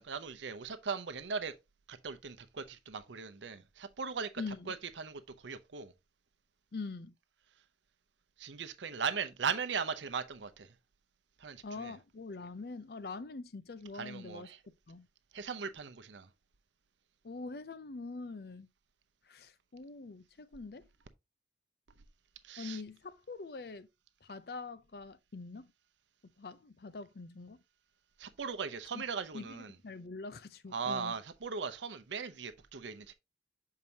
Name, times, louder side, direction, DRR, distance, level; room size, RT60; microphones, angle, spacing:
voice 1, 0.0-1.5 1.9-4.3 4.7-5.9 8.4-10.7 11.4-11.9 13.9-14.6 15.3-16.3 22.4-22.8 28.2-29.7 30.7-33.1, right 5 dB, 90° right, 0.7 m, -38 dB
voice 2, 4.4-4.7 6.7-7.1 11.6-15.1 17.2-18.7 19.2-20.9 22.6-23.9 24.2-25.7 26.4-27.6 28.9-29.0 29.3-31.1, left 3 dB, 60° left, 0.5 m, -44 dB
7.0 x 4.7 x 2.8 m
head